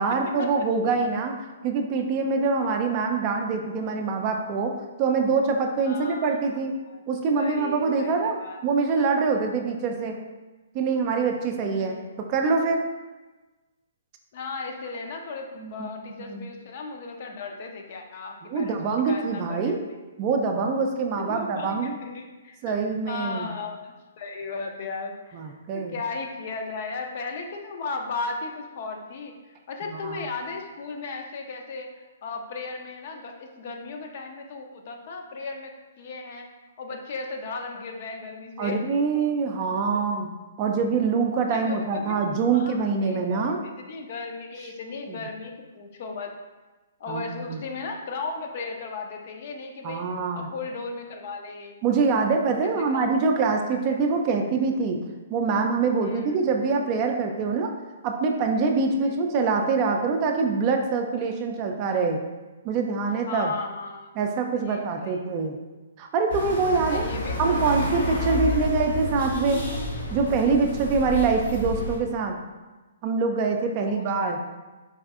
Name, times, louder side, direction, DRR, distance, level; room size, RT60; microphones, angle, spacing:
voice 1, 0.0-1.4 1.6-6.8 7.1-10.2 10.7-12.8 15.6-15.9 16.3-16.5 18.5-19.8 20.2-22.0 22.6-23.5 25.3-25.9 30.0-30.2 38.6-40.3 40.6-43.6 45.1-45.3 47.1-47.6 49.8-50.5 51.8-55.0 55.3-57.7 58.0-62.2 62.6-63.5 64.2-65.6 66.0-67.1 67.4-69.7 70.1-72.4 73.0-74.4, right 4 dB, 35° right, 3 dB, 0.3 m, -24 dB
voice 2, 5.9-6.3 6.9-7.0 7.3-8.6 11.6-12.1 14.3-18.8 19.1-19.8 21.2-22.7 23.1-25.5 25.9-29.3 29.7-31.9 32.2-36.5 36.8-38.8 39.9-40.0 41.4-42.2 42.5-46.3 47.0-50.0 50.3-51.8 52.6-53.1 53.5-53.6 53.9-54.0 56.0-56.4 59.0-59.2 63.3-64.1 64.6-65.3 66.7-67.7 68.2-68.6 73.7-74.4, left 4 dB, 50° left, 3 dB, 0.5 m, -36 dB
sound 1, 66.3-72.0, left 1 dB, 70° left, 1.1 m, -30 dB
4.1 x 2.5 x 2.4 m, 1.2 s
hypercardioid pair, 130°, 0 cm